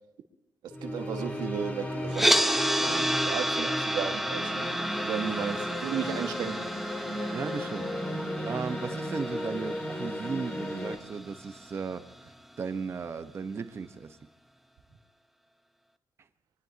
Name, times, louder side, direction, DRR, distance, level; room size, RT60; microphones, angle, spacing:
voice 1, 0.6-4.7 5.0-6.7, right 7 dB, 85° right, 1.7 m, -35 dB
sound 1, 0.7-11.0, left 1 dB, 20° left, 3.5 m, -35 dB
sound 2, 2.1-12.2, right 1 dB, 5° right, 0.8 m, -31 dB
voice 2, 7.3-7.9 8.4-12.1 12.6-14.2, right 5 dB, 40° right, 1.1 m, -36 dB
25.0 x 20.0 x 2.9 m
cardioid pair, 115°, 7 cm